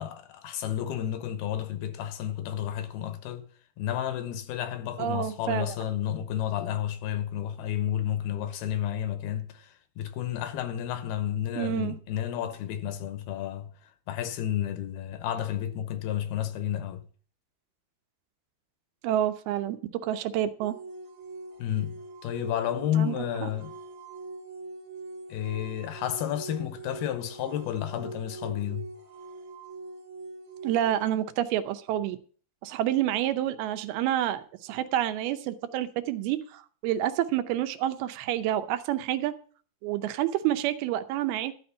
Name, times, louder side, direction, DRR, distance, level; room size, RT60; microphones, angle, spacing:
voice 1, 0.0-3.5 3.8-13.7 14.1-17.0 21.6-23.7 25.3-28.9, left 11 dB, 85° left, 2.9 m, -31 dB
voice 2, 5.0-5.8 11.6-12.0 19.0-19.8 20.0-20.7 23.0-23.2 23.4-23.5 30.6-32.2 32.6-39.3 39.8-41.5, right 12 dB, 85° right, 2.7 m, -28 dB
sound 1, 20.6-31.0, right 3 dB, 55° right, 2.3 m, -43 dB
12.5 x 4.4 x 8.4 m
omnidirectional pair, 4.4 m